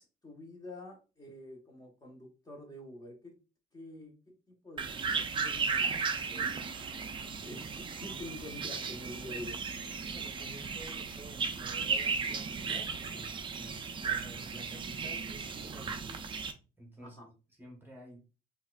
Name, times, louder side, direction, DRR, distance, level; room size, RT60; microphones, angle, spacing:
voice 1, 0.0-3.3 3.7-4.1 4.6-6.7 7.4-9.6 17.0-17.3, left 1 dB, 20° left, 1.2 m, -47 dB
sound 1, 4.8-16.5, right 5 dB, 30° right, 0.5 m, -35 dB
voice 2, 10.0-16.2 16.8-17.2 17.6-18.2, right 1 dB, 10° right, 0.9 m, -51 dB
4.1 x 2.5 x 2.4 m
cardioid pair, 110°, 17 cm